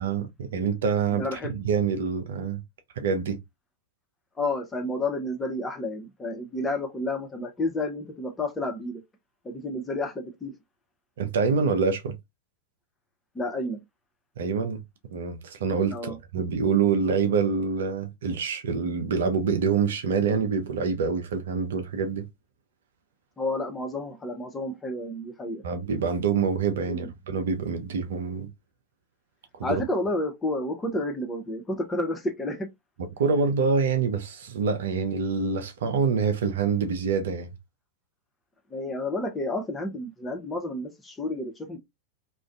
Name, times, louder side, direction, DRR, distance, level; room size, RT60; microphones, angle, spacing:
voice 1, 0.0-2.6 3.0-3.4 11.2-12.2 14.4-14.8 15.1-22.2 25.6-28.5 29.6-29.8 33.2-37.5, right 5 dB, 65° right, 0.5 m, -26 dB
voice 2, 1.1-1.6 4.4-9.0 9.4-10.5 13.3-13.8 15.9-16.2 23.4-25.6 26.9-27.1 29.6-32.7 38.7-41.8, left 2 dB, 15° left, 0.7 m, -30 dB
2.4 x 2.2 x 2.4 m
figure-of-eight pair, 90°, 0 cm